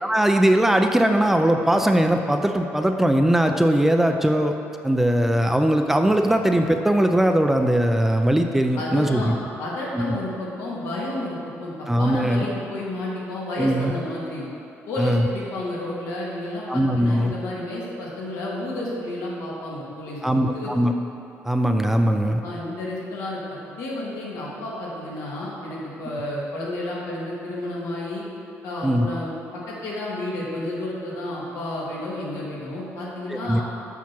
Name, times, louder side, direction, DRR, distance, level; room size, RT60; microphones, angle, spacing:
voice 1, 0.0-4.5 4.8-9.4 9.9-10.2 11.9-12.4 13.6-13.9 15.0-15.3 16.7-17.3 20.2-20.9 21.4-22.4 28.8-29.1 33.3-33.6, right 1 dB, 5° right, 5 dB, 0.4 m, -20 dB
voice 2, 8.8-14.5 14.9-20.7 22.4-28.2 28.6-33.6, left 1 dB, 85° left, -5 dB, 2.2 m, -31 dB
7.1 x 5.9 x 6.0 m, 2.7 s
cardioid pair, 140°, 5 cm